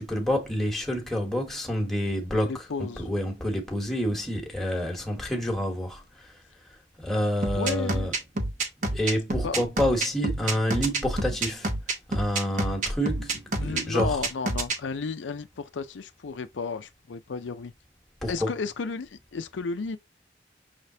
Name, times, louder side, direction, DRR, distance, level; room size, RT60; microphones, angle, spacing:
voice 1, 0.0-2.6 3.0-6.0 7.0-8.1 8.8-11.7 12.1-14.2 18.2-18.5, equal, ahead, 1.1 m, -28 dB
voice 2, 2.4-3.1 7.5-8.1 9.4-9.6 13.6-17.7 18.3-20.0, left 4 dB, 85° left, 0.5 m, -33 dB
sound 1, 7.4-14.8, right 2 dB, 45° right, 0.9 m, -28 dB
5.7 x 3.3 x 2.7 m
head